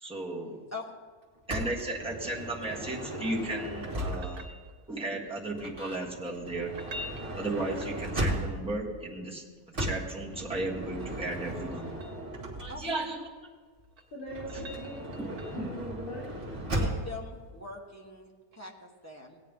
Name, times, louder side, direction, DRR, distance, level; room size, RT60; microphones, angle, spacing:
voice 1, 0.0-0.6 1.5-4.5 4.9-6.7 7.4-9.4 9.8-11.9 12.6-13.2 15.2-15.3, right 2 dB, 5° right, -4 dB, 1.6 m, -35 dB
Motor vehicle (road) / Sliding door, 1.5-4.6 5.5-8.8 9.7-13.0 14.3-17.2, right 1 dB, 35° right, 2.2 m, -36 dB
sound 1, 3.9-5.1 6.6-8.5 10.6-12.2 13.7-15.8 18.5-18.6, left 1 dB, 80° right, 1.6 m, -47 dB
voice 2, 12.7-13.0 16.7-19.4, left 3 dB, 10° left, -2 dB, 1.1 m, -43 dB
voice 3, 14.1-16.3, equal, 70° left, -9 dB, 4.0 m, -40 dB
17.0 x 9.4 x 3.7 m, 1.5 s
omnidirectional pair, 1.6 m